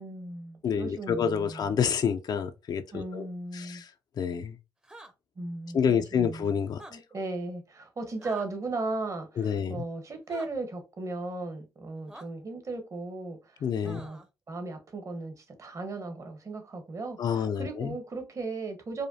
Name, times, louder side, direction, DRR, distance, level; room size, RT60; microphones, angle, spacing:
voice 1, 0.0-1.7 2.9-3.8 5.4-6.5 6.9-14.2 14.5-19.1, right 3 dB, 40° right, 1.1 m, -37 dB
voice 2, 0.6-3.3 3.5-3.9 4.2-4.6 5.7-7.0 9.4-9.8 13.6-14.0 17.2-18.0, left 7 dB, 60° left, 0.5 m, -28 dB
sound 1, 4.8-5.1 6.7-6.9 8.2-8.5 10.3-10.5 12.1-12.3 13.8-14.3, right 1 dB, 10° right, 0.7 m, -46 dB
4.9 x 2.3 x 2.7 m
cardioid pair, 70°, 8 cm